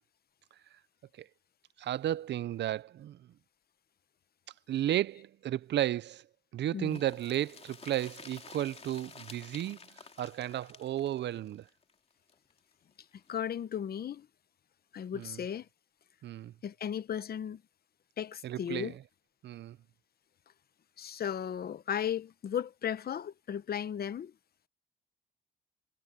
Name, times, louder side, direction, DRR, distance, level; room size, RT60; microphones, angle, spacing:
voice 1, 1.8-3.3 4.7-6.3 6.5-9.8 10.2-11.7 15.1-15.4 16.2-16.5 18.4-19.0 19.4-19.8, right 12 dB, 65° right, 0.6 m, -33 dB
sound 1, 6.9-12.6 12.9-13.0 13.3-13.4, left 4 dB, 30° left, 2.8 m, -51 dB
voice 2, 13.3-14.3 14.9-15.6 16.6-17.6 18.2-18.9 21.0-24.3, left 9 dB, 50° left, 1.0 m, -35 dB
cardioid pair, 90°, 20 cm